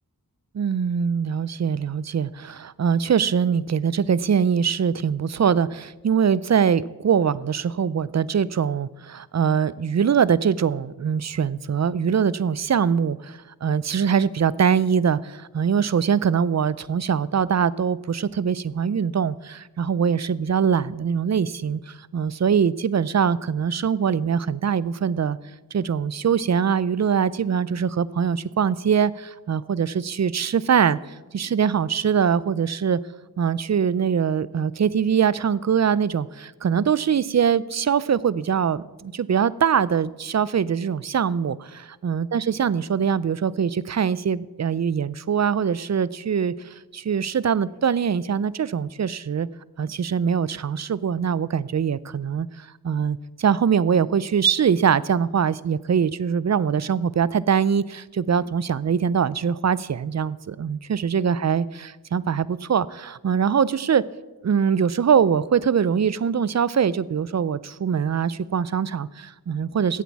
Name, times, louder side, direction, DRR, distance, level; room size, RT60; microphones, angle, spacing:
voice 1, 0.5-25.4 25.7-33.0 33.4-49.5 49.8-64.0 64.4-70.0, right 7 dB, 45° right, 19 dB, 0.5 m, -23 dB
15.5 x 8.3 x 4.6 m, 1.1 s
wide cardioid pair, 50°, 37 cm